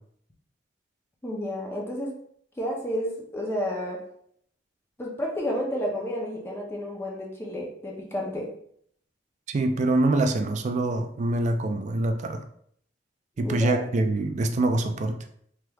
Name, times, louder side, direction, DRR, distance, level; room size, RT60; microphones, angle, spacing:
voice 1, 1.2-2.2 2.6-4.0 5.0-8.5 13.4-13.8, equal, 15° left, -2 dB, 0.5 m, -31 dB
voice 2, 9.5-12.4 13.4-15.2, right 2 dB, 40° right, 6 dB, 0.3 m, -25 dB
3.3 x 3.0 x 2.3 m, 0.65 s
head